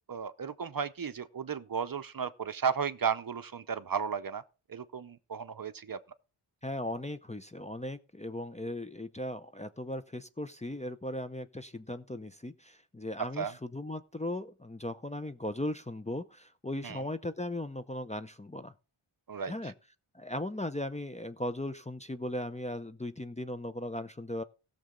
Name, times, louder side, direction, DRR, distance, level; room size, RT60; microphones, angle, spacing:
voice 1, 0.1-4.4 4.7-6.0 13.4-13.5 16.8-17.0 19.3-19.5, right 6 dB, 45° right, 0.7 m, -34 dB
voice 2, 6.6-18.7 19.5-19.7 20.1-24.4, left 1 dB, 15° left, 0.6 m, -37 dB
17.0 x 6.8 x 3.7 m
wide cardioid pair, 105°, 50 cm